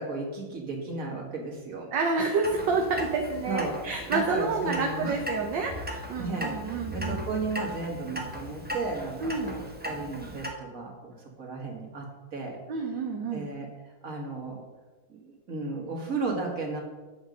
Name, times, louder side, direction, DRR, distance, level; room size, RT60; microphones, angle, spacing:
voice 1, 0.0-1.9 3.5-3.7 4.1-5.1 6.2-12.0 12.3-12.6 13.3-13.7 14.0-14.6 15.1-16.8, right 3 dB, 40° right, -1 dB, 2.4 m, -34 dB
voice 2, 1.9-7.2 9.2-9.5 12.7-13.5, right 4 dB, 65° right, 2 dB, 1.6 m, -29 dB
Clock, 2.4-10.5, equal, 10° right, 0.5 m, -37 dB
9.6 x 7.8 x 5.3 m, 1.2 s
omnidirectional pair, 2.3 m